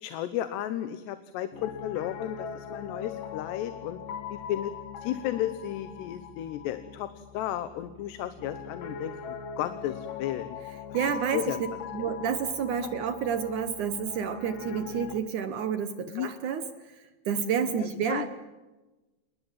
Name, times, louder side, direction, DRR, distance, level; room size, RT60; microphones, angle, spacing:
voice 1, 0.0-4.0 4.3-4.7 5.0-7.1 7.3-10.6 11.3-11.6 12.0-12.1 16.1-16.3 17.8-18.2, left 12 dB, 90° left, 11 dB, 3.2 m, -33 dB
Piano, 1.5-15.2, left 7 dB, 60° left, 3.4 m, -41 dB
voice 2, 10.9-11.5 11.9-16.7 17.3-18.3, right 7 dB, 65° right, 10 dB, 2.1 m, -29 dB
28.0 x 21.0 x 7.5 m, 1.1 s
omnidirectional pair, 4.7 m